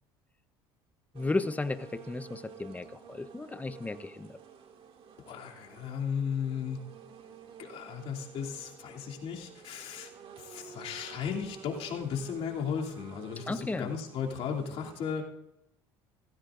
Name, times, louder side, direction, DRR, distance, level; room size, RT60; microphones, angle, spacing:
voice 1, 1.1-4.3 13.5-13.9, left 3 dB, 15° left, 13 dB, 0.8 m, -34 dB
sound 1, 1.1-15.1, right 7 dB, 55° right, 2.3 m, -51 dB
voice 2, 5.2-6.8 7.6-10.1 10.4-15.3, left 7 dB, 60° left, -1 dB, 2.8 m, -35 dB
17.5 x 15.0 x 2.5 m, 0.84 s
supercardioid pair, 90°, 12 cm